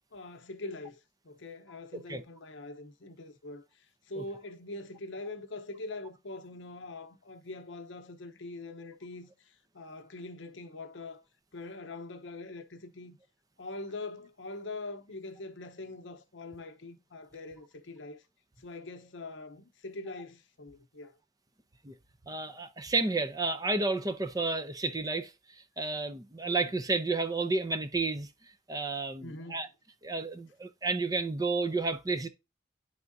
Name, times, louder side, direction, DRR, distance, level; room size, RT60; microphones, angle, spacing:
voice 1, 0.1-11.2 11.5-13.2 13.6-18.2 18.6-21.1 29.2-29.7, left 2 dB, 70° left, 0.8 m, -43 dB
voice 2, 22.3-25.3 25.8-28.3 28.7-29.7 30.0-32.3, right 3 dB, 20° right, 0.5 m, -31 dB
10.5 x 3.6 x 2.6 m
head